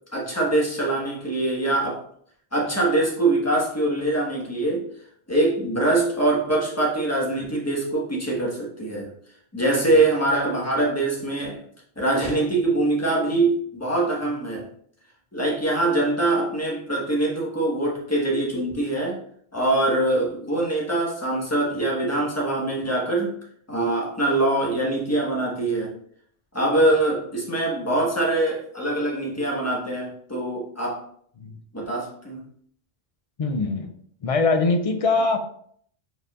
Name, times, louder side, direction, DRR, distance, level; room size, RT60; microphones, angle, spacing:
voice 1, 0.1-2.0 2.5-4.9 5.3-9.1 9.5-11.6 12.0-14.7 15.3-19.2 19.5-23.3 23.7-25.9 26.5-31.0 31.7-32.4, right 2 dB, 15° left, -4 dB, 1.3 m, -23 dB
voice 2, 33.4-33.9 34.2-35.4, left 3 dB, 55° left, 6 dB, 0.4 m, -22 dB
4.9 x 4.6 x 2.4 m, 0.63 s
omnidirectional pair, 1.1 m